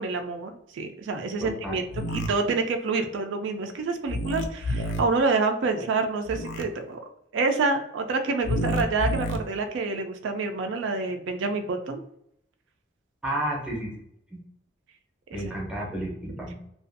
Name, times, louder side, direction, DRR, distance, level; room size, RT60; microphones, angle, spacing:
voice 1, 0.0-1.8 2.1-7.0 7.3-12.0 15.3-15.4, right 3 dB, 80° right, 6 dB, 0.3 m, -27 dB
voice 2, 1.4-1.8 13.2-13.9 14.3-14.4 15.3-16.5, right 1 dB, 5° right, -2 dB, 0.6 m, -31 dB
sound 1, 1.9-2.3 4.1-5.0 6.3-6.6 8.4-9.4, left 1 dB, 80° left, 0.3 m, -29 dB
2.5 x 2.3 x 2.5 m, 0.75 s
head